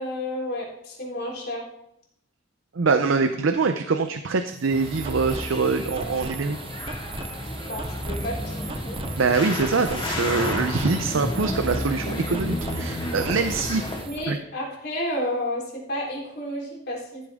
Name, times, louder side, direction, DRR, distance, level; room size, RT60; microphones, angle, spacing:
voice 1, 0.0-1.6 7.7-9.0 14.0-17.3, left 1 dB, 55° left, -4 dB, 3.8 m, -31 dB
voice 2, 2.7-6.6 9.2-13.8 14.3-14.4, right 4 dB, 85° right, 8 dB, 0.6 m, -24 dB
sound 1, 4.5-14.3, right 4 dB, 30° right, 0.6 m, -38 dB
sound 2, 4.7-14.0, left 1 dB, 30° left, 2.1 m, -31 dB
14.5 x 8.6 x 3.6 m, 0.78 s
head